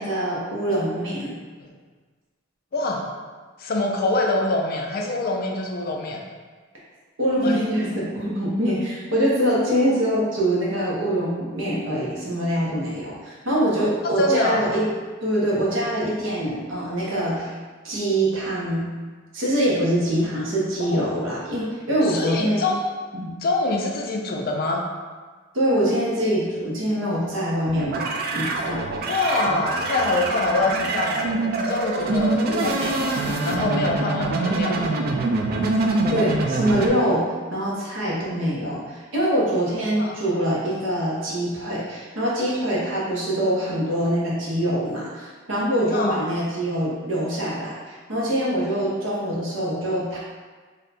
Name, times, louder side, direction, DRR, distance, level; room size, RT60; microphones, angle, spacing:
voice 1, 0.0-1.3 7.2-14.8 15.2-17.5 17.8-18.8 19.3-22.7 23.1-23.3 25.5-29.0 36.1-50.2, right 1 dB, 65° right, -6 dB, 0.9 m, -24 dB
voice 2, 2.7-3.0 3.6-6.2 7.4-7.5 14.2-14.6 20.9-21.0 22.1-22.9 23.4-24.9 29.0-31.3 31.6-33.1 33.4-34.9 40.0-40.2 45.9-46.2, left 2 dB, 45° left, 1 dB, 0.4 m, -24 dB
sound 1, 27.7-36.9, right 2 dB, 45° right, 0.3 m, -25 dB
2.7 x 2.2 x 4.0 m, 1.4 s
head